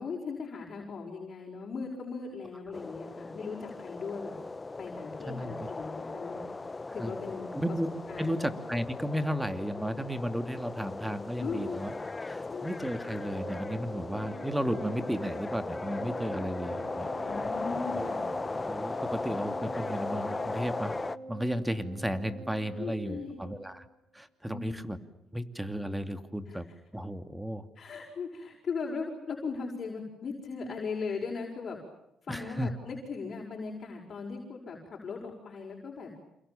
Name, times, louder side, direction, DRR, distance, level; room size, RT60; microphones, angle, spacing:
voice 1, 0.0-4.4 4.8-6.4 6.9-7.5 8.1-8.5 11.4-11.9 12.4-12.8 17.3-18.3 22.8-23.4 24.5-24.9 26.5-26.6 27.7-31.8 32.2-36.1, left 4 dB, 50° left, 0 dB, 6.4 m, -38 dB
sound 1, 2.7-21.2, left 3 dB, 25° left, 1.0 m, -37 dB
voice 2, 5.3-5.7 7.0-7.1 7.5-11.9 12.2-17.1 17.9-18.2 18.6-20.9 21.3-23.8 24.1-25.0 25.3-26.7 26.9-27.7 32.3-32.7, equal, 5° right, 10 dB, 2.7 m, -34 dB
Organ, 13.2-23.9, right 2 dB, 75° right, 5.3 m, -44 dB
28.5 x 28.0 x 7.2 m, 0.83 s
cardioid pair, 90°, 0 cm